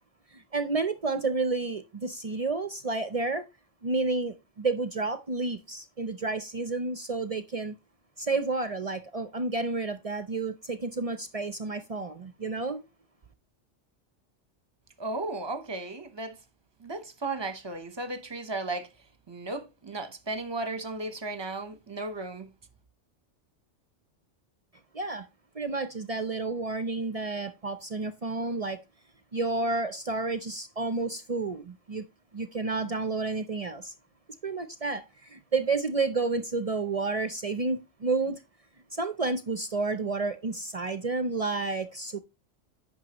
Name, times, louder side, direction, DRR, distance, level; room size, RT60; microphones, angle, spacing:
voice 1, 0.3-3.4 3.8-7.7 8.2-12.8 24.9-25.3 25.5-28.8 29.3-32.0 32.3-33.9 34.4-38.4 38.9-42.2, right 3 dB, 45° right, 0.5 m, -30 dB
voice 2, 15.0-16.4 16.8-18.9 19.3-22.5, right 2 dB, 25° right, 0.8 m, -35 dB
9.2 x 6.0 x 2.9 m
omnidirectional pair, 1.2 m